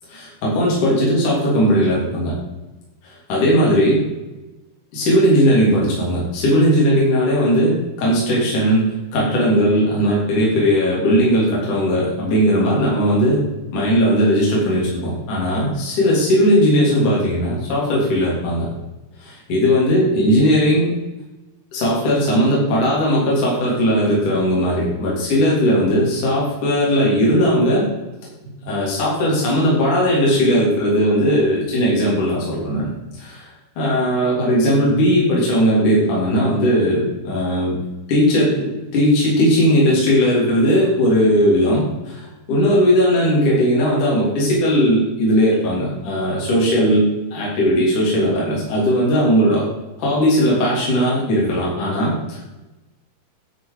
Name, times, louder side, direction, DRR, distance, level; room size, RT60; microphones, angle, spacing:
voice 1, 0.1-2.3 3.0-4.0 4.9-7.7 8.0-13.4 13.7-18.7 19.2-20.9 21.7-27.9 28.6-32.9 33.2-33.5 33.8-37.8 38.1-49.6 50.0-52.5, equal, 55° left, -6 dB, 4.7 m, -18 dB
12.0 x 6.8 x 5.1 m, 1.0 s
omnidirectional pair, 4.4 m